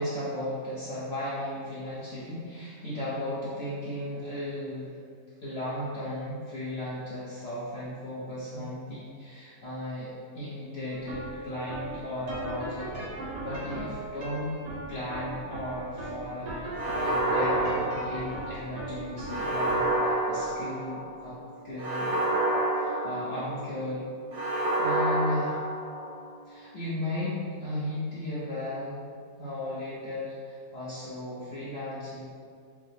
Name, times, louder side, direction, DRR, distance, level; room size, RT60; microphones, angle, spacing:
voice 1, 0.0-4.9 5.4-10.1 10.3-14.5 14.9-21.4 21.6-22.5 22.7-24.1 24.8-25.6 26.4-29.0 29.4-32.3, left 1 dB, 55° left, -10 dB, 0.9 m, -35 dB
sound 1, 10.9-28.1, right 2 dB, 70° right, 1.3 m, -41 dB
sound 2, 16.7-18.6 19.3-21.1 21.8-23.7 24.3-26.2, right 1 dB, 50° right, 0.8 m, -28 dB
5.4 x 2.0 x 3.2 m, 2.1 s
omnidirectional pair, 1.6 m